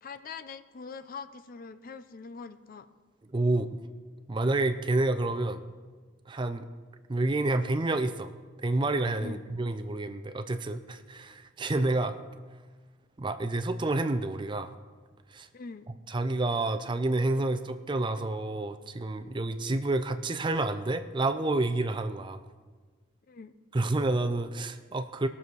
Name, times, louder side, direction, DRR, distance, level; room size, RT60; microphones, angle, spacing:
voice 1, 0.0-2.9 9.2-9.4 15.5-15.9 23.3-23.5, left 5 dB, 45° left, 12 dB, 0.5 m, -43 dB
voice 2, 3.3-3.8 4.3-5.6 6.3-6.6 7.1-8.3 8.6-12.2 13.2-14.7 15.3-15.5 16.1-22.4 23.7-25.3, right 2 dB, 25° right, 9 dB, 0.5 m, -29 dB
19.0 x 7.0 x 4.7 m, 1.4 s
head